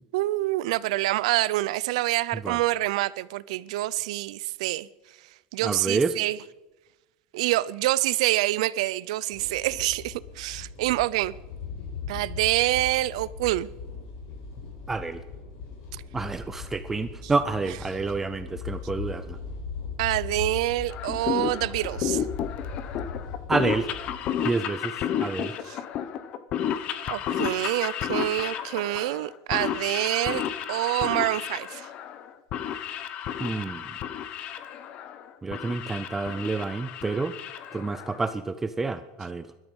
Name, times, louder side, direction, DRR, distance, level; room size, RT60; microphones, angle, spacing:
voice 1, 0.1-4.9 5.5-6.4 7.3-11.3 12.1-13.7 15.9-16.0 17.2-17.3 20.0-22.2 25.6-25.8 27.1-31.9, right 17 dB, 85° right, 0.5 m, -26 dB
voice 2, 5.6-6.1 14.9-15.2 16.1-19.4 23.5-23.9 24.4-24.9 25.2-25.6 33.4-33.9 35.4-37.3 37.7-39.5, right 3 dB, 10° right, 0.4 m, -28 dB
sound 1, 9.3-24.3, left 5 dB, 70° left, 6.9 m, -39 dB
sound 2, 20.9-38.3, left 9 dB, 35° left, 0.9 m, -32 dB
20.5 x 12.5 x 5.4 m
cardioid pair, 175°, 3 cm